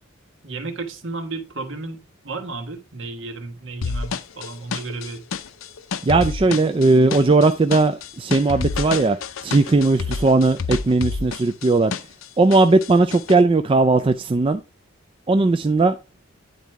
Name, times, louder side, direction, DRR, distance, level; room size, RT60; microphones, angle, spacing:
voice 1, 0.4-5.2 6.1-6.6, right 3 dB, 65° right, 1.5 m, -33 dB
sound 1, 3.8-12.3 12.5-13.4, left 5 dB, 80° left, 0.6 m, -29 dB
voice 2, 6.0-9.2 9.4-11.9 12.4-14.6 15.3-16.0, right 3 dB, 25° right, 0.3 m, -17 dB
9.2 x 4.0 x 4.6 m
head